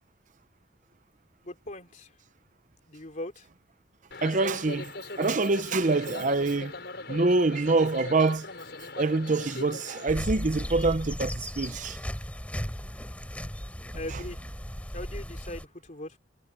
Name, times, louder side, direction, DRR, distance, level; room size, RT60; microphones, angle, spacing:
voice 1, 1.4-2.1 2.9-3.5 13.9-14.4 14.9-16.2, left 1 dB, 40° left, 3.2 m, -39 dB
sound 1, 4.1-10.1, left 2 dB, 65° left, 6.7 m, -40 dB
voice 2, 4.2-6.8 7.1-8.5 9.0-12.0 14.1-14.2, right 3 dB, 45° right, 0.7 m, -26 dB
sound 2, 10.1-15.6, equal, 10° left, 3.3 m, -36 dB
head